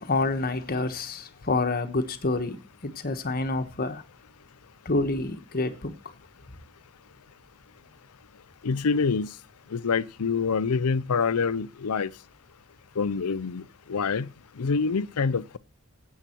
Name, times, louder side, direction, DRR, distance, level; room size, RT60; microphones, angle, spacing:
voice 1, 0.0-4.0 4.8-5.9, left 2 dB, 45° left, 1.3 m, -28 dB
voice 2, 8.6-9.3 9.7-12.1 13.0-13.6 13.9-14.3 14.6-15.6, left 5 dB, 80° left, 0.6 m, -26 dB
16.0 x 8.4 x 4.5 m
head